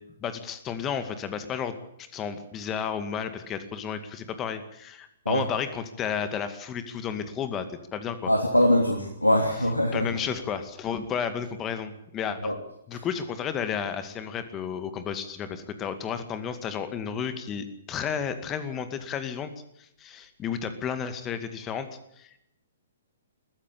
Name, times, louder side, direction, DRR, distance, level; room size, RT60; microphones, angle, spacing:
voice 1, 0.2-8.3 9.9-12.5 12.9-19.5 19.8-21.9 22.2-22.4, left 7 dB, 20° left, 10 dB, 2.2 m, -32 dB
voice 2, 8.3-10.1 12.4-12.5 12.9-13.0, equal, 90° left, 3 dB, 2.9 m, -22 dB
21.5 x 15.0 x 8.6 m, 0.77 s
figure-of-eight pair, 120°, 0 cm